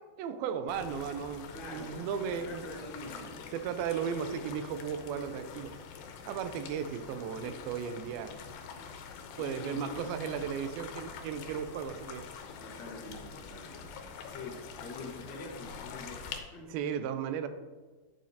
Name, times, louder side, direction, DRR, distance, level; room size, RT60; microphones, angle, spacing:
voice 1, 0.0-2.7 3.5-5.7 6.3-8.3 9.4-12.3 16.7-17.5, right 7 dB, 85° right, 10 dB, 2.5 m, -35 dB
sound 1, 0.7-16.4, left 6 dB, 85° left, 2.6 m, -45 dB
voice 2, 1.5-3.6 7.0-7.2 9.4-10.0 10.2-10.4 12.6-16.7, left 2 dB, 60° left, -2 dB, 1.2 m, -46 dB
10.5 x 7.5 x 2.8 m, 1.3 s
omnidirectional pair, 4.2 m